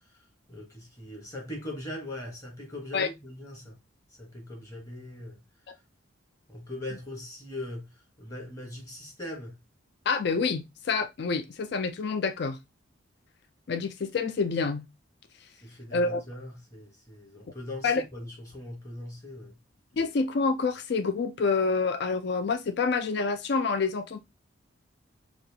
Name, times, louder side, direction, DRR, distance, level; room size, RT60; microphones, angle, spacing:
voice 1, 0.1-3.8 4.2-5.4 6.5-9.6 15.6-19.6, left 1 dB, 15° left, 1.1 m, -40 dB
voice 2, 10.1-12.6 13.7-14.9 15.9-16.2 17.8-18.0 20.0-24.2, left 4 dB, 55° left, 0.4 m, -27 dB
4.1 x 2.3 x 2.7 m
head